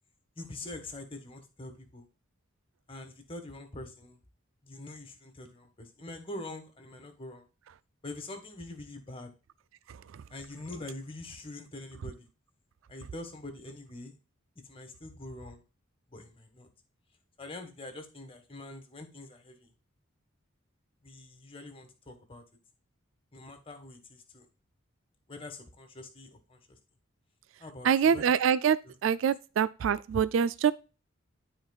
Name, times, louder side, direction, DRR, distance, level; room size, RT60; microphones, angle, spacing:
voice 1, 0.4-2.0 2.9-4.2 4.6-7.4 8.0-9.3 10.3-12.3 12.9-14.2 14.6-15.6 16.1-16.7 17.4-19.7 21.0-22.4 23.3-24.5 25.3-26.8 27.6-28.2 28.8-28.9, left 2 dB, 25° left, 1.5 m, -44 dB
voice 2, 27.8-30.7, right 7 dB, 65° right, 0.3 m, -25 dB
12.5 x 4.5 x 2.3 m
head